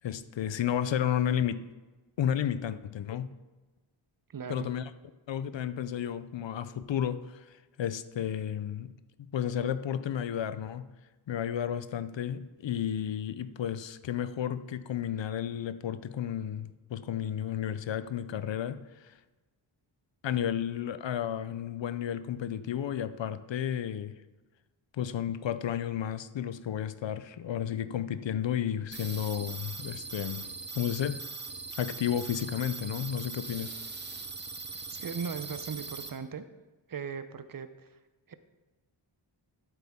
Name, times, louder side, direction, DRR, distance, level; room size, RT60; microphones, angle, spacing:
voice 1, 0.0-1.6 2.2-3.3 4.5-4.8 5.3-7.4 7.8-8.9 9.3-10.9 11.3-19.1 20.2-24.1 25.0-30.5 30.7-31.2 31.8-33.7, left 9 dB, 65° left, 13 dB, 0.6 m, -32 dB
voice 2, 4.3-4.7 34.9-36.4 36.9-38.0 38.3-38.4, right 6 dB, 45° right, 11 dB, 0.6 m, -38 dB
sound 1, 28.9-36.1, right 4 dB, 20° right, 0.8 m, -41 dB
13.0 x 7.9 x 3.6 m, 1.2 s
wide cardioid pair, 120°, 48 cm